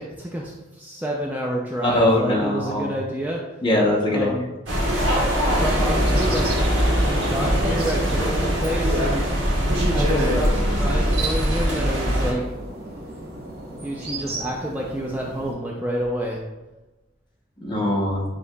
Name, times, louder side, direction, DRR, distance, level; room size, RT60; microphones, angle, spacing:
voice 1, 0.0-3.4 4.1-4.5 5.6-6.5 7.0-9.4 9.9-12.5 13.8-16.4, equal, 10° right, -2 dB, 0.3 m, -29 dB
voice 2, 1.8-2.9 3.6-4.3 17.6-18.2, left 1 dB, 25° left, -2 dB, 0.8 m, -21 dB
sound 1, 4.7-12.3, equal, 75° right, 1.2 m, -21 dB
sound 2, 6.1-15.5, right 2 dB, 50° right, 0.8 m, -37 dB
7.6 x 2.8 x 2.2 m, 1.1 s
head